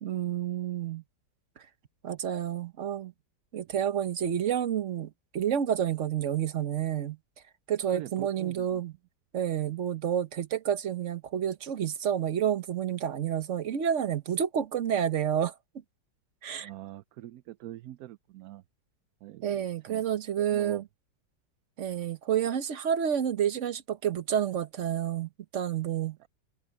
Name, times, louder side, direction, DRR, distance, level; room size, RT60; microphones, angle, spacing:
voice 1, 0.0-1.0 2.0-3.1 3.5-7.2 7.7-8.9 9.3-15.5 16.4-16.7 19.4-20.9 21.8-26.2, right 9 dB, 50° right, 1.2 m, -29 dB
voice 2, 7.9-8.8 16.6-18.6 19.2-20.0 20.4-20.8, right 15 dB, 70° right, 0.9 m, -43 dB
omnidirectional pair, 1.9 m